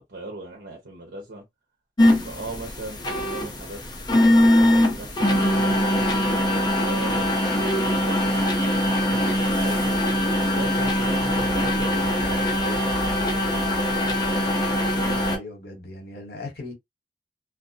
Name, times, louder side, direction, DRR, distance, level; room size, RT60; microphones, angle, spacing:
voice 1, 0.1-1.4 2.1-3.8 4.7-6.1 6.8-8.6 9.1-10.1 10.5-13.7, right 2 dB, 85° right, 0.8 m, -39 dB
sound 1, 2.0-15.4, left 1 dB, 25° left, 0.5 m, -22 dB
voice 2, 14.9-16.7, left 2 dB, 60° left, 1.0 m, -38 dB
2.4 x 2.0 x 2.5 m
head